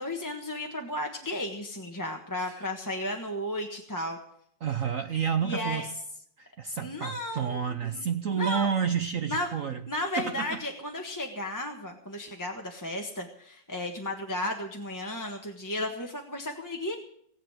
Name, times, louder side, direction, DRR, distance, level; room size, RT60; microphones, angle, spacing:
voice 1, 0.0-4.2 5.4-5.9 6.8-8.0 8.3-8.7 9.3-9.5 9.9-17.0, left 1 dB, 10° left, 2 dB, 1.2 m, -34 dB
voice 2, 4.6-5.9 6.4-9.8 10.2-10.6, right 7 dB, 55° right, 8 dB, 1.0 m, -30 dB
18.5 x 8.3 x 7.8 m, 0.67 s
omnidirectional pair, 2.0 m